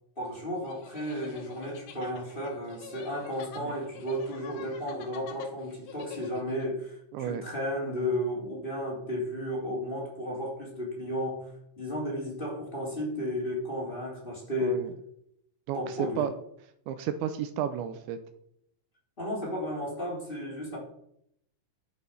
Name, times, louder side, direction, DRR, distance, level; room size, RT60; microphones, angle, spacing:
voice 1, 0.2-11.5 11.8-14.8 15.7-16.3 19.2-20.8, equal, 10° left, -3 dB, 3.1 m, -33 dB
sound 1, 0.6-6.7, left 7 dB, 70° left, 3.2 m, -48 dB
voice 2, 7.1-7.4 7.9-8.1 14.6-14.9 15.7-16.3 16.9-18.2, right 9 dB, 80° right, 9 dB, 2.8 m, -32 dB
11.5 x 8.5 x 5.4 m, 0.73 s
omnidirectional pair, 5.7 m